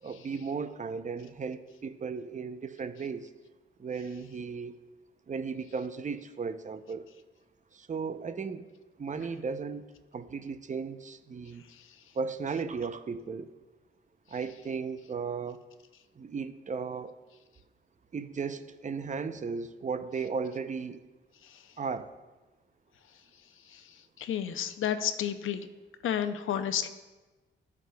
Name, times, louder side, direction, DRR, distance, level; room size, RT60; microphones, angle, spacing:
voice 1, 0.0-3.3 3.8-4.7 5.3-7.1 7.7-8.7 9.0-9.8 10.1-11.7 12.1-13.5 14.3-15.6 16.2-17.2 18.1-21.0 21.8-22.1, right 5 dB, 35° right, 11 dB, 0.6 m, -35 dB
voice 2, 24.2-25.7 26.0-26.9, left 9 dB, 70° left, 9 dB, 0.6 m, -31 dB
14.0 x 4.8 x 2.3 m, 1.2 s
supercardioid pair, 60°, 21 cm